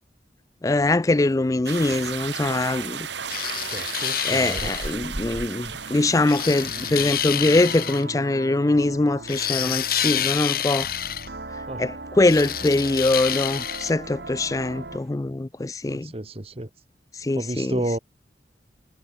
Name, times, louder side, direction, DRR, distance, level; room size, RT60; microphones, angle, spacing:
voice 1, 0.6-3.1 4.2-10.9 11.8-16.1 17.1-17.8, left 2 dB, 20° left, 0.4 m, -23 dB
sound 1, 1.7-7.2, right 6 dB, 85° right, 2.8 m, -34 dB
sound 2, 3.3-4.9 6.3-8.0 9.3-11.3 12.2-13.9, left 11 dB, 55° left, 3.9 m, -28 dB
voice 2, 3.7-4.7 11.7-11.8 15.9-16.7 17.4-18.0, right 1 dB, 35° right, 1.3 m, -31 dB
sound 3, 5.6-15.1, right 2 dB, 65° right, 2.1 m, -39 dB
head